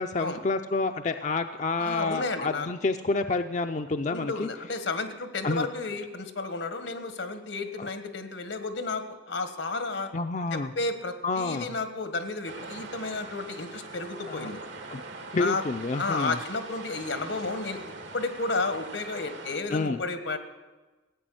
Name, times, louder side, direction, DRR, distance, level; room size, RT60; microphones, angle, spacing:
voice 1, 0.0-4.5 5.4-5.7 7.8-7.9 10.1-10.7 11.2-11.8 14.3-14.5 14.9-15.0 15.3-16.4 19.7-20.0, left 3 dB, 40° left, 7 dB, 0.5 m, -29 dB
voice 2, 1.8-2.7 4.1-10.1 10.5-14.6 15.3-15.6 16.0-17.8 18.1-20.4, left 3 dB, 85° left, 8 dB, 1.5 m, -32 dB
sound 1, 12.4-19.6, right 3 dB, 85° right, 2.3 m, -42 dB
15.5 x 8.9 x 7.7 m, 1.2 s
head